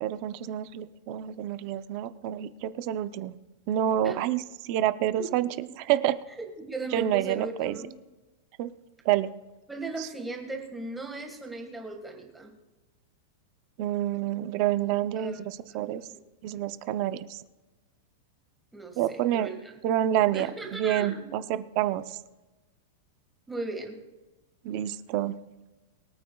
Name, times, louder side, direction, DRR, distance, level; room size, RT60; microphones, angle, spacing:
voice 1, 0.0-3.3 3.7-5.5 5.8-6.2 6.9-7.8 8.6-8.7 9.0-9.3 10.0-10.1 13.8-16.0 16.4-17.4 19.0-19.5 19.8-22.2 24.6-25.4, right 12 dB, 35° right, 13 dB, 0.6 m, -28 dB
voice 2, 6.4-7.9 9.7-12.5 15.2-15.4 15.7-16.2 18.7-19.7 20.3-21.3 23.5-24.0, right 3 dB, 5° right, 2 dB, 1.7 m, -37 dB
23.5 x 9.1 x 2.3 m, 1.1 s
supercardioid pair, 170°, 0 cm